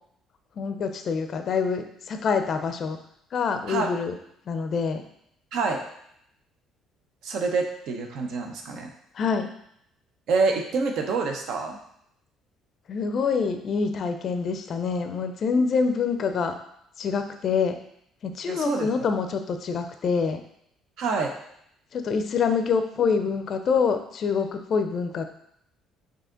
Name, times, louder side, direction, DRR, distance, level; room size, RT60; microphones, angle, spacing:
voice 1, 0.6-3.0 3.3-4.1 4.5-5.0 9.2-9.5 12.9-16.6 17.0-17.8 18.2-20.4 21.9-25.2, left 5 dB, 45° left, 7 dB, 0.4 m, -26 dB
voice 2, 5.5-5.8 7.2-8.9 10.3-11.8 18.5-18.9 21.0-21.3, right 4 dB, 70° right, 3 dB, 0.7 m, -26 dB
4.9 x 2.8 x 3.7 m, 0.73 s
cardioid pair, 125°, 0 cm